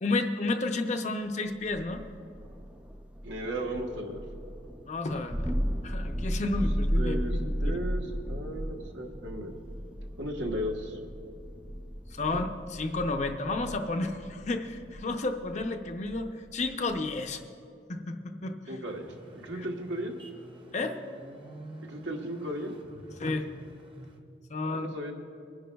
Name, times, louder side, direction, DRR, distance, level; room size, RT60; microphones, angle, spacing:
voice 1, 0.0-2.0 4.9-5.5 5.8-7.8 12.1-17.4 17.9-18.8 19.5-19.6 20.7-21.0 23.2-23.5 24.5-24.9, left 2 dB, 40° left, 6 dB, 0.6 m, -31 dB
Thunder, 1.6-17.4, equal, 5° right, 0.4 m, -35 dB
voice 2, 3.2-4.2 7.0-9.5 10.2-11.0 18.7-20.1 21.8-22.7 24.6-25.1, right 1 dB, 90° right, 1 dB, 1.2 m, -35 dB
sound 1, 18.8-24.2, right 1 dB, 30° right, 0.8 m, -49 dB
24.5 x 10.5 x 2.3 m, 2.5 s
head